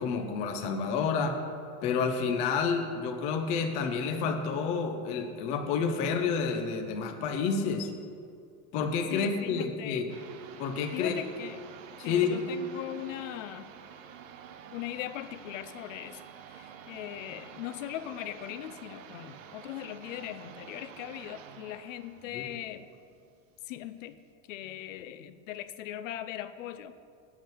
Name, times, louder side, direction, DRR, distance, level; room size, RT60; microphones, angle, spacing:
voice 1, 0.0-1.4 1.8-7.9 8.7-10.1 10.6-11.2 12.0-12.4 22.2-22.5, left 5 dB, 20° left, 6 dB, 0.3 m, -29 dB
voice 2, 9.1-10.0 10.9-11.6 12.0-13.7 14.7-16.2 16.5-22.9 23.7-24.2 24.5-26.9, left 12 dB, 80° left, 13 dB, 0.7 m, -39 dB
sound 1, 10.1-23.5, right 8 dB, 85° right, 0.9 m, -49 dB
8.0 x 7.4 x 7.1 m, 2.4 s
supercardioid pair, 165°, 38 cm